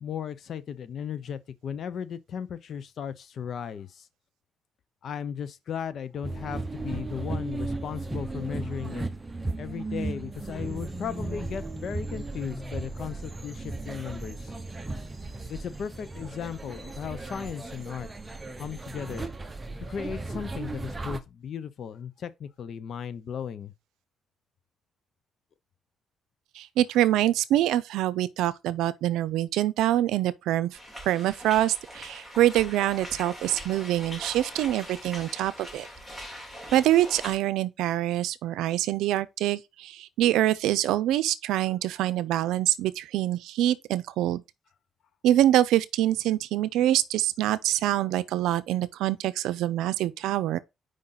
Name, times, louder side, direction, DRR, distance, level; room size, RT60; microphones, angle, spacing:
voice 1, 0.0-4.1 5.0-9.1 9.6-14.5 15.5-18.1 18.6-19.3 19.8-23.7, left 8 dB, 60° left, 0.7 m, -36 dB
sound 1, 6.2-21.2, right 2 dB, 20° right, 0.8 m, -36 dB
voice 2, 26.6-30.8 31.1-35.9 36.7-44.4 45.2-50.6, right 13 dB, 90° right, 0.5 m, -25 dB
sound 2, 30.7-37.4, equal, 10° left, 2.6 m, -42 dB
5.1 x 3.8 x 5.7 m
cardioid pair, 90°, 0 cm